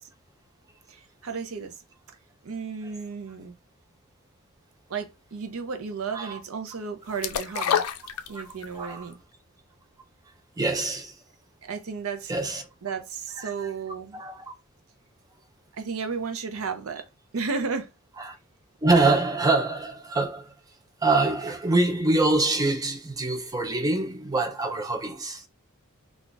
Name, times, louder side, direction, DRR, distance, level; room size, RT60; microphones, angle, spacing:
voice 1, 0.9-1.7 2.4-3.6 4.9-7.8 8.3-9.2 11.6-12.3 12.8-14.2 15.8-17.0 17.3-17.9, right 5 dB, 70° right, 0.6 m, -33 dB
sound 1, 7.2-8.8 9.1-9.2, left 8 dB, 85° left, 0.4 m, -27 dB
voice 2, 8.8-9.1 10.6-11.1 12.3-12.6 13.4-13.5 14.1-14.4 18.3-18.4 18.8-20.5 21.0-25.5, right 2 dB, 15° right, 0.4 m, -25 dB
2.4 x 2.4 x 3.8 m
head